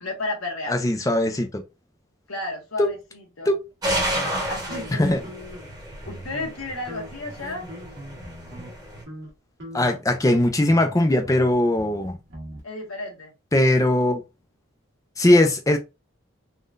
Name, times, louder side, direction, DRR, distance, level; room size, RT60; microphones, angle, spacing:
voice 1, 0.0-0.8 2.3-3.5 4.5-5.0 6.0-7.7 12.6-13.3, left 2 dB, 75° left, 1.1 m, -32 dB
voice 2, 0.7-1.6 2.8-2.9 3.5-3.6 5.0-5.2 9.7-12.1 13.5-14.2 15.2-15.8, left 1 dB, 15° left, 0.4 m, -20 dB
sound 1, 3.8-9.0, right 1 dB, 20° right, 1.0 m, -31 dB
sound 2, 3.9-5.7 6.0-6.6 6.9-8.8 9.1-9.3 9.6-12.6, equal, 55° right, 1.4 m, -42 dB
3.6 x 2.2 x 2.5 m
head